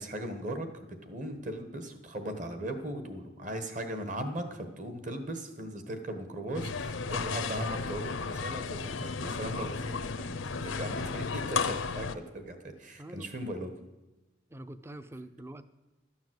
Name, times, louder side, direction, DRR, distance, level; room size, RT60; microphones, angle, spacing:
voice 1, 0.0-13.7, right 1 dB, 40° right, 8 dB, 1.3 m, -38 dB
sound 1, 6.5-12.2, left 4 dB, 85° left, 0.7 m, -34 dB
voice 2, 13.0-13.3 14.5-15.6, right 1 dB, 15° right, 13 dB, 0.5 m, -45 dB
13.0 x 7.2 x 7.8 m, 1.1 s
head